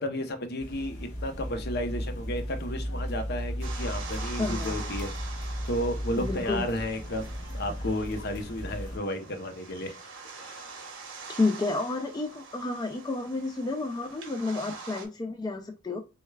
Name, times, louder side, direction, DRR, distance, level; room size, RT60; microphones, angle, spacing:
voice 1, 0.0-5.1 5.7-7.3 7.5-9.9 10.4-10.6, left 1 dB, 55° left, 7 dB, 0.7 m, -32 dB
sound 1, 0.6-9.0, equal, 75° left, 1.0 m, -35 dB
sound 2, 3.6-15.1, right 4 dB, 70° right, 1.1 m, -44 dB
voice 2, 4.4-4.8 6.2-6.6 11.3-16.0, left 3 dB, 20° left, 5 dB, 0.3 m, -30 dB
6.3 x 2.2 x 2.2 m, 0.28 s
head